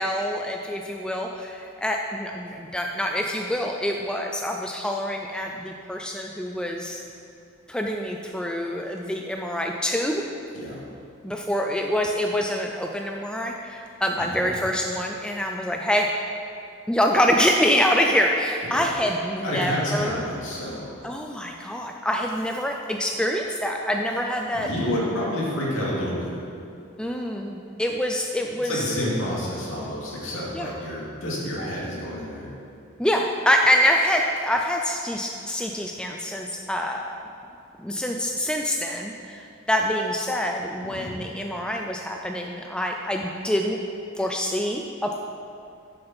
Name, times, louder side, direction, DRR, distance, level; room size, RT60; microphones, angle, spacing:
voice 1, 0.0-7.0 7.7-10.2 11.2-16.1 16.9-20.2 21.0-24.7 27.0-28.8 30.5-30.7 33.0-37.1 37.8-43.8 44.2-45.2, equal, 5° left, 1 dB, 0.3 m, -25 dB
voice 2, 14.2-14.5 18.7-18.9 19.4-20.9 24.5-26.3 28.6-32.5 40.8-41.1, left 1 dB, 70° left, -5 dB, 2.5 m, -29 dB
10.5 x 6.6 x 4.4 m, 2.5 s
head